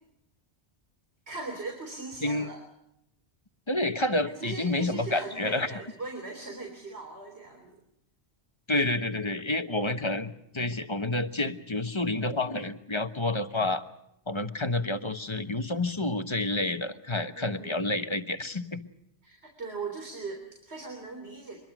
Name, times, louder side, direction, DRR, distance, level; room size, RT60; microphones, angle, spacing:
voice 1, 1.3-2.6 4.2-7.8 17.3-17.8 19.2-21.6, right 3 dB, 65° right, 3 dB, 3.8 m, -39 dB
voice 2, 3.7-5.7 8.7-13.8 14.3-18.8, left 2 dB, 25° left, 9 dB, 1.2 m, -29 dB
25.5 x 21.5 x 6.1 m, 0.78 s
omnidirectional pair, 1.2 m